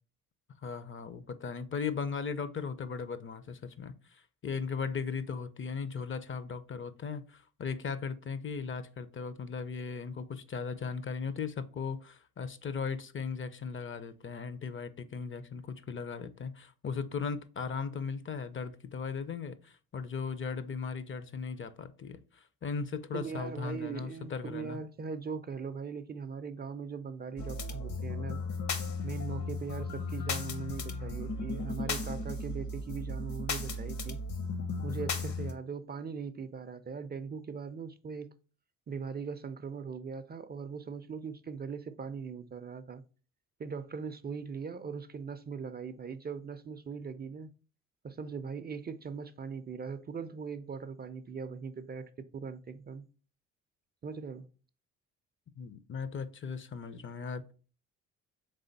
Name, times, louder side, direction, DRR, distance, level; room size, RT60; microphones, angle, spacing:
voice 1, 0.6-24.8 55.6-57.5, left 5 dB, 35° left, 0.5 m, -37 dB
voice 2, 23.1-28.4 29.0-34.2 34.8-38.3 38.9-43.0 43.6-47.5 48.0-53.0 54.0-54.5, right 5 dB, 30° right, 0.4 m, -40 dB
sound 1, 27.4-35.5, left 3 dB, 60° left, 0.9 m, -35 dB
3.7 x 3.4 x 3.9 m
supercardioid pair, 65°, 33 cm